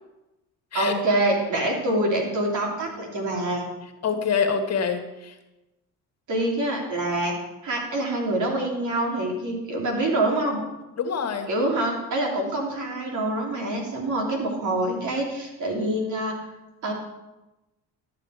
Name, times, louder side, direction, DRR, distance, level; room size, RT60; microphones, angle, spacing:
voice 1, 0.7-3.6 6.3-7.4 7.6-10.6 11.5-16.4 16.8-16.9, right 1 dB, 60° right, 0 dB, 3.1 m, -25 dB
voice 2, 4.0-5.3 11.0-11.5, left 6 dB, 45° left, 6 dB, 1.4 m, -25 dB
12.0 x 7.6 x 4.8 m, 1.0 s
cardioid pair, 90°, 34 cm